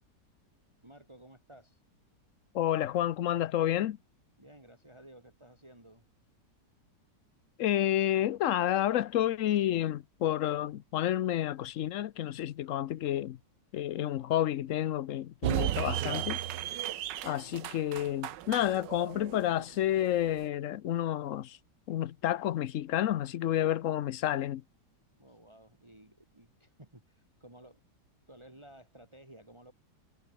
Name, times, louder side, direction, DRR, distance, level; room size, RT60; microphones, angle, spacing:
voice 1, 0.8-1.8 4.4-6.0 25.2-27.8 28.3-29.7, right 1 dB, 15° right, 4.1 m, -55 dB
voice 2, 2.5-4.0 7.6-13.4 13.7-16.4 17.2-21.6 21.9-24.6, left 12 dB, 60° left, 0.9 m, -30 dB
sound 1, 15.4-20.5, right 12 dB, 85° right, 1.5 m, -35 dB
omnidirectional pair, 1.9 m